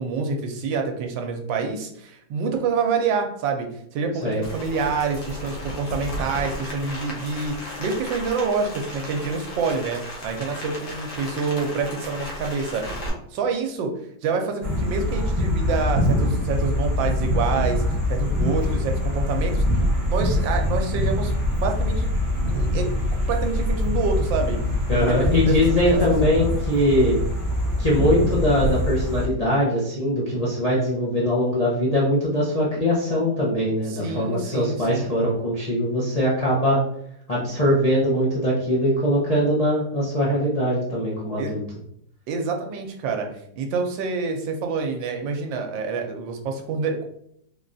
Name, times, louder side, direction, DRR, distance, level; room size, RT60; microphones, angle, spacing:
voice 1, 0.0-4.3 4.5-13.0 13.3-13.9 14.2-17.8 18.1-24.6 25.0-26.0 33.9-35.1 41.4-41.5 42.3-43.3 43.6-47.0, right 4 dB, 90° right, 4 dB, 1.3 m, -27 dB
Rain, 4.4-13.1, equal, 90° left, 1.7 m, -35 dB
sound 1, 14.6-29.3, left 1 dB, 25° right, 0.8 m, -24 dB
voice 2, 24.9-27.2 27.8-36.8 37.3-41.6, equal, 75° left, -6 dB, 0.3 m, -22 dB
3.9 x 3.1 x 2.6 m, 0.70 s
omnidirectional pair, 2.0 m